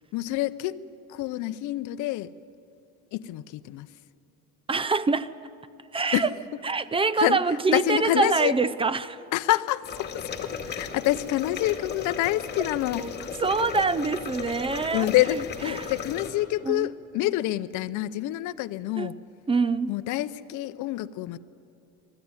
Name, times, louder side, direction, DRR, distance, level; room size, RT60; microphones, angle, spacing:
voice 1, 0.1-0.8 1.1-2.3 3.1-3.9 6.1-6.3 7.2-7.4 7.7-8.5 9.3-13.3 14.9-19.2 19.9-21.4, left 15 dB, 60° left, 0.6 m, -27 dB
voice 2, 4.7-5.3 5.9-6.3 6.6-9.2 13.0-15.1 15.7-15.9 16.6-16.9 19.0-19.1 19.5-19.9, right 4 dB, 15° right, 0.5 m, -25 dB
sound 1, 9.8-16.3, left 6 dB, 30° left, 2.2 m, -36 dB
20.5 x 14.0 x 9.6 m
cardioid pair, 110°, 34 cm